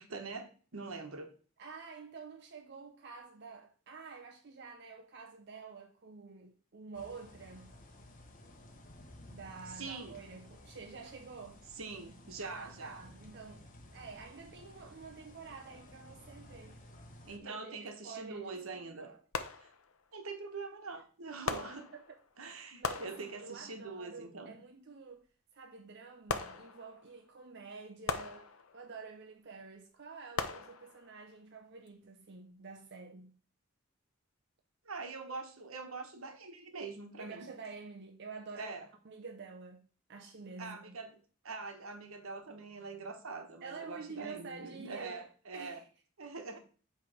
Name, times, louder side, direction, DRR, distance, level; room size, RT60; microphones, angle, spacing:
voice 1, 0.0-1.3 9.7-10.2 11.7-13.0 17.2-19.1 19.6-19.7 20.1-21.9 22.4-24.5 34.8-37.5 38.5-38.9 40.6-41.2 41.4-45.8 46.2-46.6, right 4 dB, 80° right, 1.2 m, -44 dB
voice 2, 1.6-7.8 9.3-11.7 12.4-16.8 17.4-19.2 21.9-22.2 22.8-25.2 25.5-33.4 37.2-38.7 39.0-41.0 43.6-45.8, right 4 dB, 55° right, 0.7 m, -49 dB
sound 1, 6.9-17.4, left 1 dB, 40° left, 1.0 m, -55 dB
sound 2, 17.8-18.0 19.3-20.1 21.5-22.4 22.8-23.8 26.3-27.2 28.1-29.0 30.4-31.3 31.9-32.0, left 5 dB, 80° left, 0.6 m, -40 dB
7.9 x 3.3 x 4.8 m
head